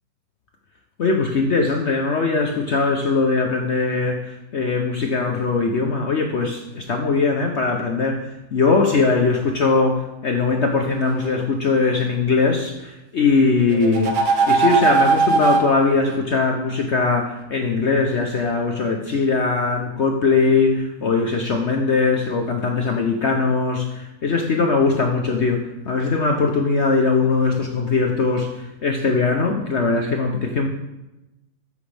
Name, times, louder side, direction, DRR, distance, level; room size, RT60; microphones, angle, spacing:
voice 1, 1.0-14.1 14.5-30.7, left 4 dB, 65° left, 3 dB, 0.7 m, -20 dB
sound 1, 10.5-11.3 13.7-15.7, right 4 dB, 85° right, 1.8 m, -20 dB
13.5 x 6.0 x 3.4 m, 0.99 s
omnidirectional pair, 2.1 m